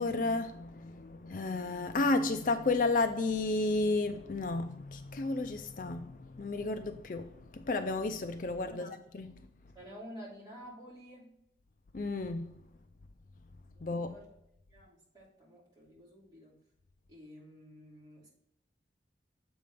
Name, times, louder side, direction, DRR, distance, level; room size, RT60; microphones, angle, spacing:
voice 1, 0.0-9.3 11.9-12.5 13.8-14.1, left 3 dB, 45° left, 0.4 m, -32 dB
voice 2, 9.7-11.3 13.7-14.3 14.7-16.5 17.1-18.3, equal, 20° right, 2.7 m, -51 dB
7.5 x 5.4 x 3.5 m
head